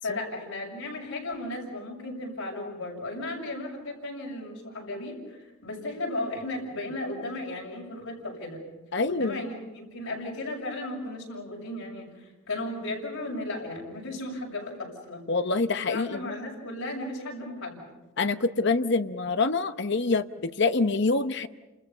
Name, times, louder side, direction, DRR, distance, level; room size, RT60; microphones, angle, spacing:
voice 1, 0.0-8.6 9.0-15.2 15.7-17.8, left 2 dB, 90° left, -2 dB, 6.8 m, -35 dB
voice 2, 8.9-9.4 15.3-16.3 18.2-21.5, left 3 dB, 55° left, 10 dB, 0.8 m, -26 dB
30.0 x 27.5 x 5.6 m, 1.1 s
head